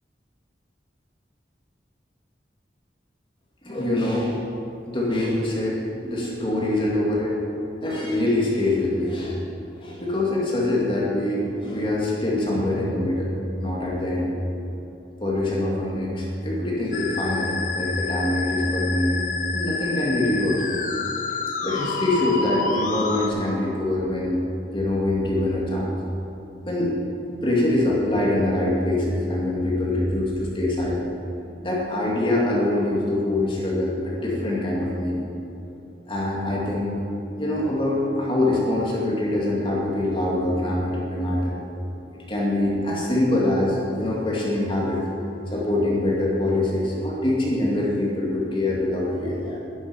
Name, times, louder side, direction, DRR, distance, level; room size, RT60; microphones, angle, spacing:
voice 1, 3.6-4.4 4.8-7.4 7.8-9.4 9.7-13.3 13.6-14.3 15.2-19.2 19.5-20.6 21.6-24.4 24.7-25.9 26.7-27.0 27.4-31.1 31.6-35.2 36.1-36.9 37.4-41.6 42.1-45.0 45.5-49.6, left 1 dB, 30° left, -4 dB, 2.4 m, -24 dB
Musical instrument, 16.9-23.3, left 4 dB, 45° left, 1.1 m, -28 dB
11.5 x 8.2 x 9.8 m, 2.9 s
head